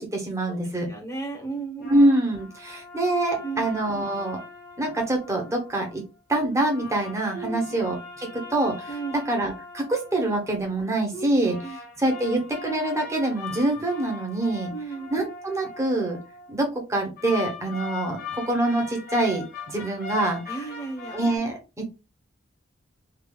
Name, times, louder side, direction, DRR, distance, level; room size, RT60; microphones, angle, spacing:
voice 1, 0.0-0.9 1.9-4.4 4.8-6.0 6.3-8.9 9.3-11.6 12.0-14.7 15.1-16.2 16.5-20.4 21.1-22.0, right 1 dB, 15° right, 1 dB, 1.1 m, -25 dB
voice 2, 0.9-1.9 3.4-3.6 7.3-7.6 8.9-9.1 11.1-11.3 11.6-11.8 14.7-15.1 20.5-21.2, right 4 dB, 15° left, -1 dB, 1.3 m, -34 dB
sound 1, 1.8-5.9 6.5-10.9 11.4-16.5 17.2-21.4, left 3 dB, 50° left, 1.4 m, -40 dB
3.5 x 2.8 x 2.3 m, 0.27 s
head